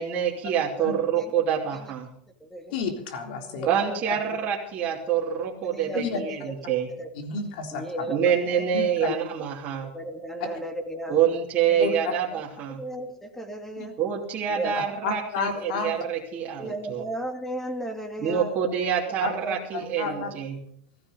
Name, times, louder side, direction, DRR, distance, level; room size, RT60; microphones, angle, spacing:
voice 1, 0.0-2.1 3.6-6.9 8.1-9.9 11.1-12.9 14.0-17.0 18.2-20.6, right 8 dB, 35° right, -4 dB, 3.2 m, -26 dB
voice 2, 0.8-1.4 1.7-1.9 2.4-2.7 3.4-4.0 5.4-6.0 6.3-6.5 6.9-7.1 7.7-9.0 9.8-11.2 11.7-12.4 12.8-14.0 14.5-14.9 15.6-15.7 16.6-18.5 19.4-19.6 20.0-20.3, right 1 dB, 5° left, 5 dB, 2.6 m, -36 dB
voice 3, 2.7-3.7 5.9-6.2 7.1-8.1 8.7-9.1 11.8-11.9 13.8-13.9 15.0-16.0 16.6-16.7 19.2-19.3 19.7-20.3, left 5 dB, 70° left, 4 dB, 3.8 m, -31 dB
15.5 x 15.0 x 5.3 m, 0.67 s
supercardioid pair, 130°, 5 cm